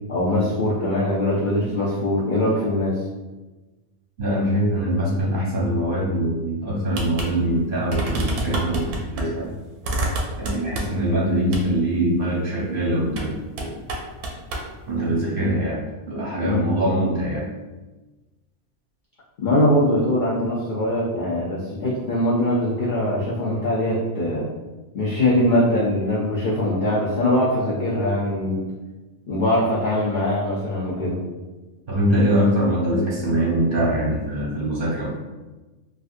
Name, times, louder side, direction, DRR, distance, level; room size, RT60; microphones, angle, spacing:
voice 1, 0.1-3.0 16.4-16.8 19.4-24.5 24.9-28.6 29.3-31.2, left 1 dB, 85° left, -6 dB, 0.4 m, -22 dB
voice 2, 4.2-9.5 10.4-13.7 14.9-17.5 31.9-35.2, right 1 dB, 50° right, -5 dB, 0.8 m, -23 dB
sound 1, 6.9-7.3 7.6-7.7 7.9-9.3 9.8-11.1 11.5-11.7 13.1-13.3 13.6-14.7, right 1 dB, 90° right, 1.1 m, -27 dB
3.2 x 2.5 x 2.5 m, 1.2 s
omnidirectional pair, 1.5 m